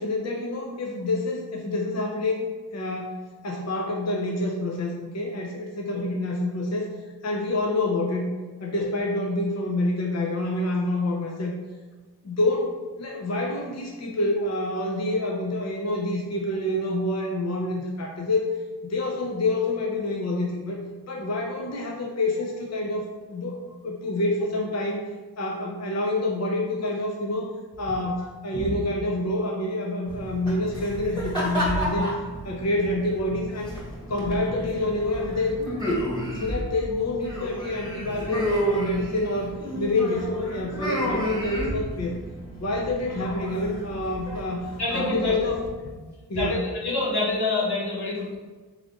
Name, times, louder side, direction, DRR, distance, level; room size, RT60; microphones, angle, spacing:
voice 1, 0.0-3.2 3.4-6.9 7.2-8.3 8.6-11.5 12.2-18.5 18.8-25.0 25.4-27.5 27.8-32.1 32.4-33.8 34.1-36.0 36.3-42.2 42.6-45.7 46.3-46.7, left 2 dB, 45° left, 0 dB, 0.6 m, -27 dB
sound 1, 30.1-45.7, equal, 10° left, 1.4 m, -31 dB
voice 2, 44.8-45.4 46.3-48.4, left 2 dB, 75° left, -5 dB, 1.3 m, -26 dB
3.6 x 3.2 x 3.9 m, 1.3 s
wide cardioid pair, 55°, 39 cm